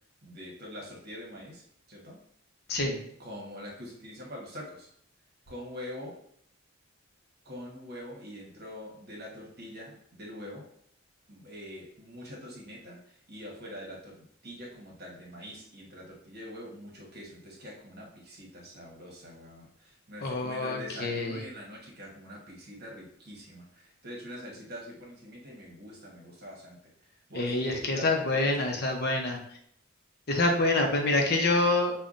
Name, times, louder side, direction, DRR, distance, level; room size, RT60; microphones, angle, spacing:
voice 1, 0.2-1.6 1.9-2.2 3.2-4.9 5.5-6.2 7.4-10.7 11.3-28.8, equal, 50° right, -2 dB, 1.1 m, -44 dB
voice 2, 2.7-3.0 20.2-21.4 27.3-29.4 30.3-31.9, left 2 dB, 50° left, 2 dB, 0.6 m, -26 dB
5.3 x 2.2 x 2.5 m, 0.67 s
head